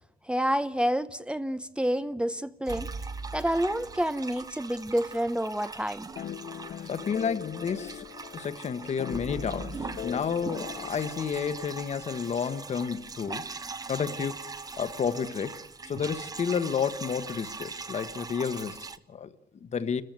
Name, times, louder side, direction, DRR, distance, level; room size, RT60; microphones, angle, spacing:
voice 1, 0.2-2.9 3.3-6.1, equal, 5° right, 0.8 m, -28 dB
sound 1, 2.7-19.0, right 4 dB, 25° right, 1.2 m, -41 dB
sound 2, 2.7-4.8 9.1-12.3, right 4 dB, 45° right, 3.4 m, -43 dB
sound 3, 6.1-11.8, left 10 dB, 70° left, 0.9 m, -41 dB
voice 2, 6.9-8.0 8.3-13.4 13.9-14.4 14.8-15.5 15.9-20.0, left 6 dB, 45° left, 1.3 m, -31 dB
29.5 x 14.5 x 9.3 m
cardioid pair, 135°, 15 cm